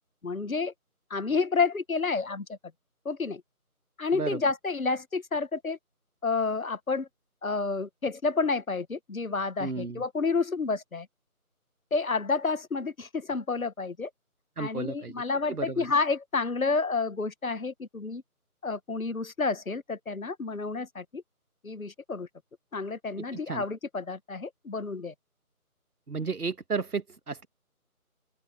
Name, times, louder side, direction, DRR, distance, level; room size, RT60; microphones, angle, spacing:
voice 1, 0.2-0.7 1.1-2.6 3.0-3.4 4.0-5.8 6.2-7.1 7.4-11.1 11.9-14.1 14.6-18.2 18.6-21.2 21.6-22.3 22.7-25.1, left 4 dB, 65° left, 1.3 m, -30 dB
voice 2, 9.6-10.0 14.6-15.1 15.5-15.9 23.3-23.6 26.1-27.5, right 4 dB, 75° right, 1.5 m, -33 dB
open air
figure-of-eight pair, 170°, 45 cm